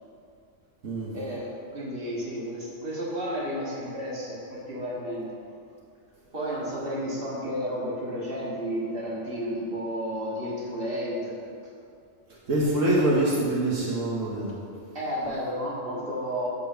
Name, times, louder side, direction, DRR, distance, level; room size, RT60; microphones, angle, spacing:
voice 1, 1.1-5.3 6.3-11.4 14.9-16.5, equal, 50° right, -5 dB, 2.2 m, -32 dB
voice 2, 12.5-14.5, right 1 dB, 85° right, -5 dB, 1.8 m, -24 dB
12.0 x 4.7 x 5.8 m, 2.4 s
omnidirectional pair, 1.3 m